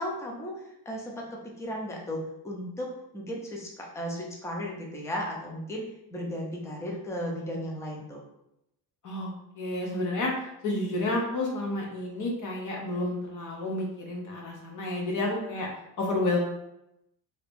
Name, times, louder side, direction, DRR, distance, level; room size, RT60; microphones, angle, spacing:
voice 1, 0.0-2.9 3.1-5.8 6.1-8.2, equal, 5° left, -1 dB, 0.3 m, -35 dB
voice 2, 9.0-10.3 10.6-15.7 16.0-16.4, left 2 dB, 45° left, -1 dB, 0.6 m, -30 dB
2.8 x 2.5 x 3.4 m, 0.84 s
cardioid pair, 165°, 43 cm